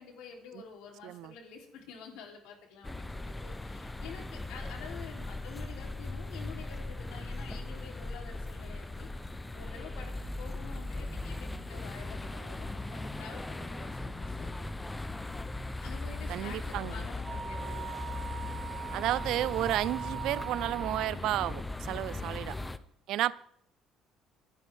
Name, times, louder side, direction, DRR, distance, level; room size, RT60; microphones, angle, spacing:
voice 1, 0.0-9.1 9.5-14.5 15.8-18.0 22.0-22.5, left 6 dB, 85° left, 1 dB, 3.5 m, -49 dB
sound 1, 2.8-22.8, left 2 dB, 10° left, 0.8 m, -39 dB
voice 2, 16.3-16.9 18.9-22.5 23.1-23.3, right 14 dB, 70° right, 19 dB, 0.5 m, -32 dB
Wind instrument woodwind instrument, 17.2-21.1, right 9 dB, 35° right, 1.1 m, -41 dB
27.5 x 9.7 x 3.6 m, 0.66 s
cardioid pair, 100°, 0 cm